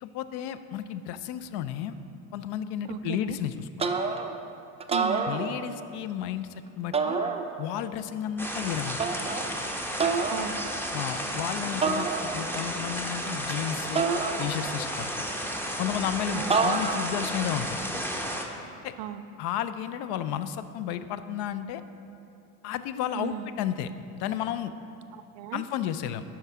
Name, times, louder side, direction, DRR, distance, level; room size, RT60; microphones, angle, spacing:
voice 1, 0.0-2.0 2.3-3.9 5.3-6.5 6.8-7.2 7.6-9.0 10.9-14.0 14.4-15.2 15.8-17.8 18.8-18.9 19.4-21.8 22.6-23.9 24.2-24.7 25.5-26.2, left 10 dB, 70° left, 12 dB, 0.5 m, -32 dB
voice 2, 2.8-3.4 4.9-5.3 10.2-10.6 16.3-16.6 19.0-19.3 23.1-23.5 25.1-25.6, right 9 dB, 75° right, 12 dB, 0.5 m, -36 dB
sound 1, 3.8-4.4 4.8-5.9 6.9-7.8 9.0-9.5 10.0-10.5 11.8-12.7 14.0-14.9 16.5-17.3, right 4 dB, 15° right, 0.4 m, -28 dB
sound 2, 8.4-18.4, equal, 5° left, 0.8 m, -33 dB
12.0 x 4.6 x 3.6 m, 2.7 s
hypercardioid pair, 65°, 42 cm